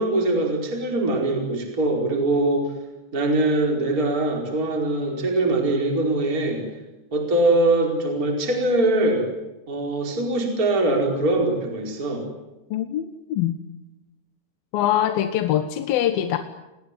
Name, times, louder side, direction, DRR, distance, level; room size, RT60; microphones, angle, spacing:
voice 1, 0.0-2.7 3.1-6.7 7.1-9.3 9.7-12.3, right 2 dB, 20° right, 2 dB, 4.8 m, -22 dB
voice 2, 12.7-13.6 14.7-16.4, left 11 dB, 70° left, 8 dB, 2.7 m, -23 dB
30.0 x 20.0 x 9.8 m, 1.0 s
omnidirectional pair, 5.1 m